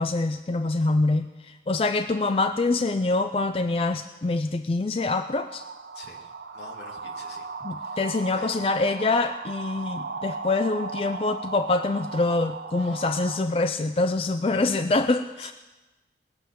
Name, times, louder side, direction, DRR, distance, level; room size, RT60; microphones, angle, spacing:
voice 1, 0.0-5.6 7.6-15.5, left 3 dB, 30° left, 10 dB, 0.4 m, -25 dB
sound 1, 5.0-13.4, right 4 dB, 70° right, 0.9 m, -37 dB
voice 2, 5.9-7.5 7.8-8.1 8.4-8.6 12.8-13.0 14.5-14.8 15.4-15.5, left 2 dB, 80° left, 0 dB, 2.3 m, -46 dB
20.0 x 7.0 x 7.5 m, 1.1 s
head